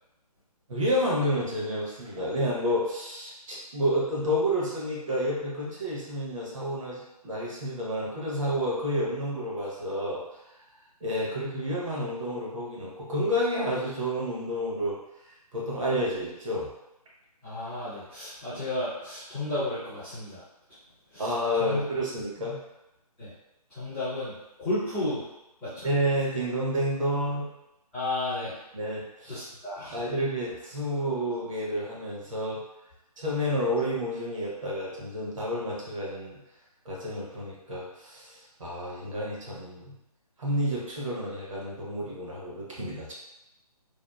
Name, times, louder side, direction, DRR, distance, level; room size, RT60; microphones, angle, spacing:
voice 1, 0.7-10.2 11.0-15.0 15.5-16.7 21.2-22.6 25.8-27.5 28.7-29.4 29.9-32.6 33.2-36.4 36.8-38.3 38.6-39.9 40.4-43.1, equal, 55° right, -5 dB, 0.9 m, -30 dB
voice 2, 17.4-20.4 21.1-21.8 23.2-23.3 23.7-25.3 25.6-25.9 27.9-28.6 29.3-30.0, left 2 dB, ahead, -18 dB, 0.4 m, -33 dB
2.7 x 2.2 x 2.2 m, 0.91 s
figure-of-eight pair, 150°, 20 cm